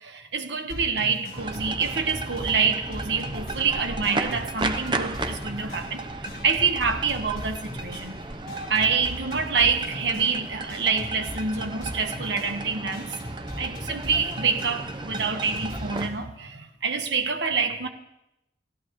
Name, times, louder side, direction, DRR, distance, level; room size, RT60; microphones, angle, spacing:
voice 1, 0.0-6.1 6.4-8.2 8.7-13.1 13.6-17.9, right 5 dB, 80° right, 1.3 m, -26 dB
sound 1, 0.7-16.3, equal, 50° left, 7.6 m, -40 dB
sound 2, 1.4-16.1, right 2 dB, 25° right, 0.8 m, -35 dB
29.0 x 15.5 x 3.2 m
head